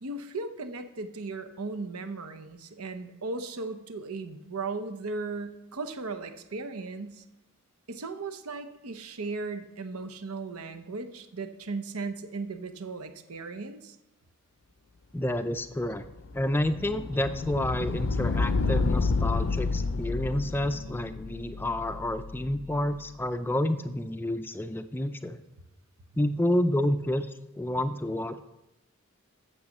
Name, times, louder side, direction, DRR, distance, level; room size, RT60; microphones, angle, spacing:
voice 1, 0.0-7.2 7.9-14.0, right 3 dB, 85° right, 8 dB, 0.9 m, -37 dB
voice 2, 15.1-16.0 16.3-25.4 26.2-27.3 27.6-28.4, left 1 dB, 10° left, 10 dB, 0.4 m, -29 dB
sound 1, 15.9-22.8, left 3 dB, 60° left, 0.5 m, -30 dB
8.9 x 6.9 x 6.5 m, 0.93 s
head